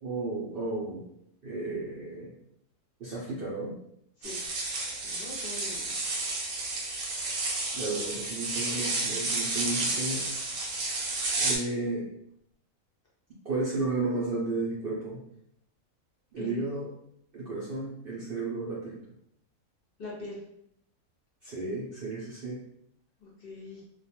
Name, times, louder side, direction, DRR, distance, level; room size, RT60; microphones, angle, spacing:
voice 1, 0.0-1.1 1.4-2.3 3.0-3.8 7.7-10.3 11.4-12.1 13.4-15.2 16.3-16.9 17.3-19.0 21.4-22.6, right 3 dB, 60° right, -5 dB, 0.6 m, -33 dB
sound 1, 4.2-11.6, right 2 dB, 85° right, 1.1 m, -31 dB
voice 2, 5.0-6.0 7.4-7.6 16.4-16.6 20.0-20.4 23.2-23.8, left 2 dB, 55° left, -4 dB, 0.7 m, -42 dB
2.3 x 2.2 x 2.8 m, 0.73 s
omnidirectional pair, 1.4 m